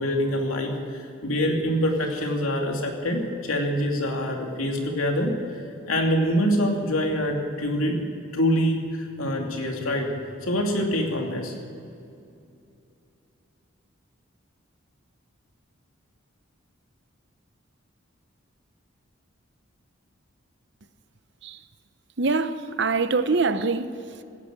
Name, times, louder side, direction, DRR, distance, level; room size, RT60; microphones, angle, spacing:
voice 1, 0.0-5.3 5.9-8.1 8.3-10.1 10.4-11.5, equal, 85° left, 2.7 m, -25 dB
voice 2, 22.2-24.2, right 4 dB, 55° right, 0.8 m, -25 dB
16.0 x 10.0 x 8.1 m
head